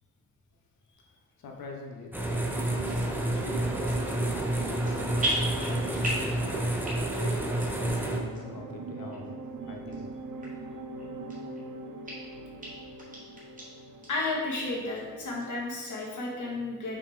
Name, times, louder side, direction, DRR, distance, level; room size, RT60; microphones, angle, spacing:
voice 1, 1.4-9.3 9.7-10.0, left 3 dB, 90° left, 1 dB, 1.0 m, -43 dB
sound 1, 2.1-8.2, right 1 dB, 5° right, 0.5 m, -29 dB
sound 2, 2.2-15.5, right 2 dB, 70° right, 0.7 m, -42 dB
sound 3, 2.9-3.1 3.7-4.2 4.4-4.9 5.2-6.3 6.7-7.2 7.6-7.7 8.3-8.4 9.1-9.2 9.9-10.0 10.4-10.5 11.0-11.6 12.0-12.1 12.6-12.7 13.0-13.6 14.0-14.1 14.5-14.6 15.0-15.4 15.8-15.9, right 1 dB, 25° right, 1.7 m, -34 dB
voice 2, 14.1-17.0, left 2 dB, 60° left, -2 dB, 1.4 m, -32 dB
5.6 x 5.1 x 3.4 m, 1.4 s
wide cardioid pair, 150°, 34 cm